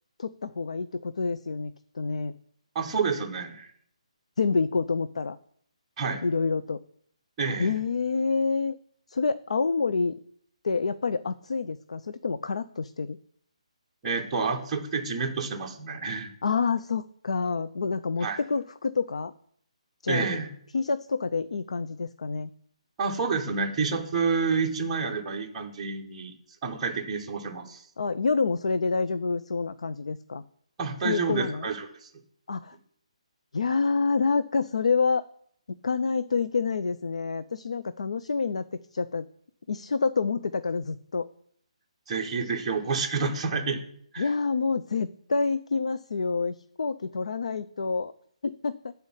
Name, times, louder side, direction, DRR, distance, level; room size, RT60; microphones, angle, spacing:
voice 1, 0.2-2.3 4.4-5.4 6.2-6.8 7.6-8.8 9.1-10.2 10.6-13.2 16.4-19.3 20.0-20.3 20.7-22.5 28.0-30.4 31.0-31.7 32.5-32.8 33.5-35.2 35.8-38.7 38.9-39.2 39.7-41.3 44.2-48.1 48.4-48.9, left 4 dB, 65° left, 13 dB, 0.4 m, -27 dB
voice 2, 2.7-3.7 6.0-6.2 7.4-7.8 14.0-16.3 18.2-18.4 20.1-20.5 23.0-26.3 26.6-27.8 30.8-32.1 42.1-43.8 44.1-44.3, right 4 dB, 10° right, -3 dB, 0.8 m, -29 dB
8.0 x 4.1 x 5.5 m, 0.66 s
hypercardioid pair, 180°, 4 cm